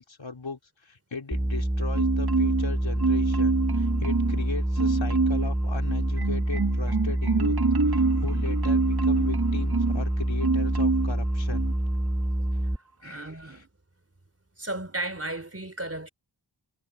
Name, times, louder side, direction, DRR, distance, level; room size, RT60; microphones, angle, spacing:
voice 1, 0.0-7.6 7.9-11.7 12.5-12.7 13.0-13.6, left 4 dB, 85° left, 4.9 m, -38 dB
sound 1, 1.3-12.8, right 1 dB, 10° right, 2.2 m, -27 dB
Marimba xylophone, 1.9-2.7 3.0-4.4 4.8-5.5 5.9-10.0 10.4-11.1 11.5-11.7, right 4 dB, 55° right, 1.8 m, -26 dB
voice 2, 13.0-13.7 14.6-16.1, right 2 dB, 35° right, 3.9 m, -34 dB
wide cardioid pair, 60°, 44 cm